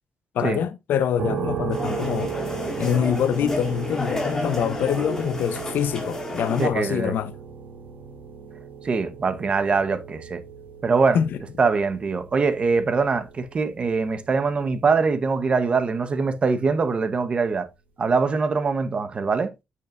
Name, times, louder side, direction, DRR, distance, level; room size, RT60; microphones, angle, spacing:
voice 1, 0.3-2.3 2.8-7.3 11.1-11.3, left 9 dB, 90° left, 0.8 m, -25 dB
sound 1, 1.2-15.8, right 6 dB, 70° right, 2.2 m, -36 dB
sound 2, 1.7-6.7, left 2 dB, 15° left, 2.0 m, -31 dB
voice 2, 6.6-7.1 8.8-10.4 10.8-11.2 11.6-17.7 18.0-19.5, right 4 dB, 35° right, 1.0 m, -23 dB
8.9 x 6.4 x 2.5 m
wide cardioid pair, 155°, 3 cm